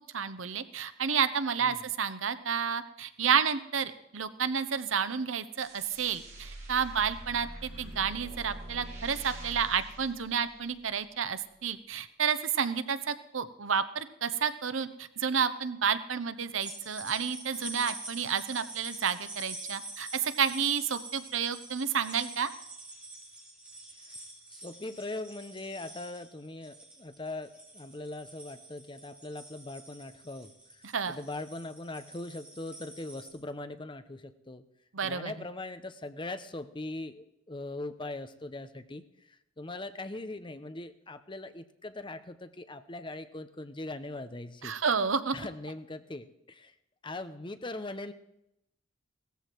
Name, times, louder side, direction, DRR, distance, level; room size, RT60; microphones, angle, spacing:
voice 1, 0.1-22.5 30.8-31.2 34.9-35.3 44.6-45.4, right 7 dB, 80° right, 13 dB, 0.9 m, -30 dB
sound 1, 5.6-10.9, right 1 dB, 35° right, 3.6 m, -44 dB
sound 2, 16.6-33.3, right 2 dB, 5° right, 3.6 m, -46 dB
voice 2, 24.5-30.8 31.1-34.7 35.0-44.7 45.3-46.7 47.0-48.1, left 2 dB, 25° left, 11 dB, 0.8 m, -41 dB
16.5 x 14.0 x 4.6 m, 0.82 s
head